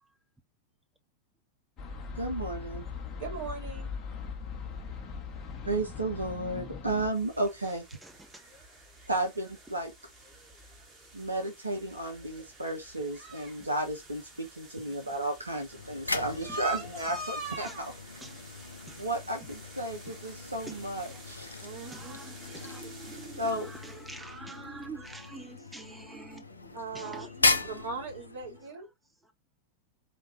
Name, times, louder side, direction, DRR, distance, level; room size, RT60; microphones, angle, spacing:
sound 1, 1.8-7.1, left 5 dB, 30° left, 1.2 m, -40 dB
voice 1, 2.2-2.8 5.6-7.8 9.1-9.9 11.1-17.9 19.0-21.5 23.4-23.7, right 1 dB, 80° right, 0.9 m, -33 dB
voice 2, 3.2-3.9 21.6-22.2 26.7-27.3 27.6-28.9, right 4 dB, 50° right, 2.9 m, -39 dB
sound 2, 7.1-24.1, right 3 dB, 20° right, 2.1 m, -46 dB
voice 3, 8.0-8.4 17.6-17.7 18.2-18.4 20.7-20.8 21.1-21.2 21.8-27.8, right 3 dB, 5° right, 0.5 m, -46 dB
sound 3, 15.7-28.7, left 3 dB, 80° left, 0.5 m, -36 dB
5.0 x 3.0 x 2.8 m
figure-of-eight pair, 90°, 0 cm